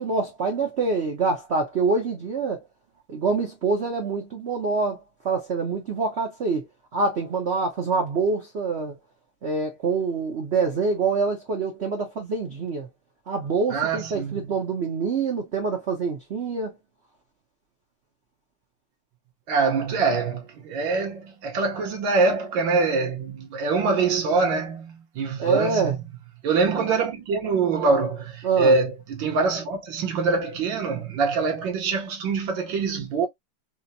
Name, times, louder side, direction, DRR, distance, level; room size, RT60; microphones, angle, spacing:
voice 1, 0.0-2.6 3.1-6.7 6.9-8.9 9.4-12.9 13.3-16.7 25.4-25.9 28.4-28.7, right 4 dB, 60° right, 0.7 m, -25 dB
voice 2, 13.7-14.5 19.5-26.0 26.4-33.3, right 4 dB, 75° right, 1.7 m, -24 dB
4.3 x 2.1 x 2.6 m
omnidirectional pair, 2.2 m